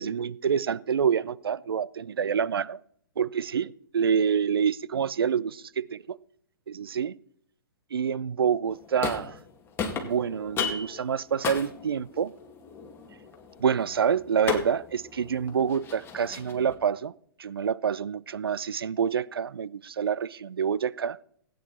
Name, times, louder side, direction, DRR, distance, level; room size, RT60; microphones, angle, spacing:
voice 1, 0.0-2.8 3.2-6.2 6.7-7.1 7.9-9.4 10.0-12.3 13.6-17.1 17.4-21.2, right 7 dB, 80° right, 0.5 m, -27 dB
sound 1, 8.7-9.5 9.8-16.7, left 6 dB, 20° left, 2.3 m, -35 dB
17.0 x 9.4 x 4.2 m
hypercardioid pair, 120°, 12 cm